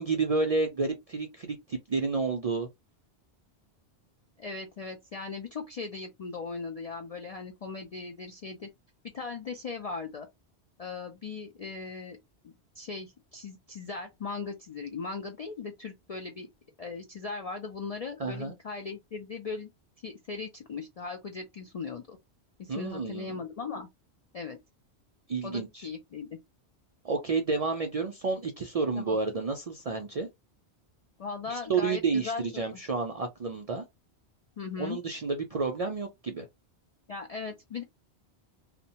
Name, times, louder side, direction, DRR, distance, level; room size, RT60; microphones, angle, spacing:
voice 1, 0.0-2.7 18.2-18.5 22.7-23.4 25.3-25.9 27.0-30.3 31.5-33.8 34.8-36.5, right 4 dB, 60° right, 0.4 m, -30 dB
voice 2, 4.4-8.7 9.1-10.3 10.8-12.2 12.4-16.5 16.8-19.7 20.0-22.2 22.6-23.9 24.3-24.6 25.4-26.3 29.0-29.2 31.2-32.7 34.6-35.0 37.1-37.8, left 4 dB, 65° left, 0.3 m, -38 dB
2.8 x 2.1 x 2.8 m
omnidirectional pair, 1.1 m